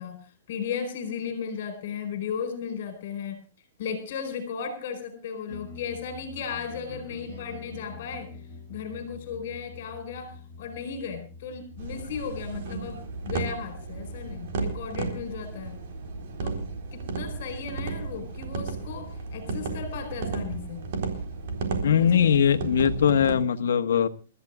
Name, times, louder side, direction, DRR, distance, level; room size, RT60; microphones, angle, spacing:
voice 1, 0.0-3.4 3.8-8.4 8.7-15.8 16.4-16.6 16.9-20.8 21.9-22.4, left 6 dB, 50° left, 5 dB, 4.4 m, -35 dB
sound 1, 5.5-15.6, left 4 dB, 20° right, 6.8 m, -46 dB
sound 2, 11.8-23.4, right 4 dB, 55° right, 4.0 m, -34 dB
voice 2, 21.8-24.1, left 8 dB, 80° left, 9 dB, 1.4 m, -21 dB
29.5 x 13.5 x 2.4 m, 0.33 s
hypercardioid pair, 160°, 0 cm